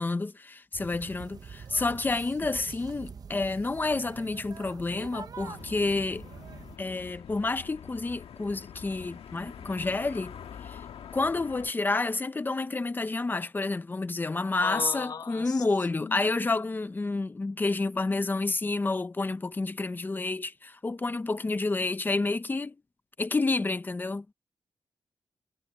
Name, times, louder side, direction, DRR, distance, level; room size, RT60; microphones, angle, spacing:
voice 1, 0.0-6.2 6.8-10.3 10.6-10.8 11.1-22.8 23.2-24.2, left 3 dB, 20° left, 0.7 m, -29 dB
sound 1, 0.7-6.8, right 6 dB, 40° right, 0.9 m, -45 dB
sound 2, 5.4-11.7, left 8 dB, 85° left, 1.5 m, -45 dB
voice 2, 14.6-15.6 16.0-16.3, left 6 dB, 40° left, 1.3 m, -36 dB
wide cardioid pair, 175°, 10 cm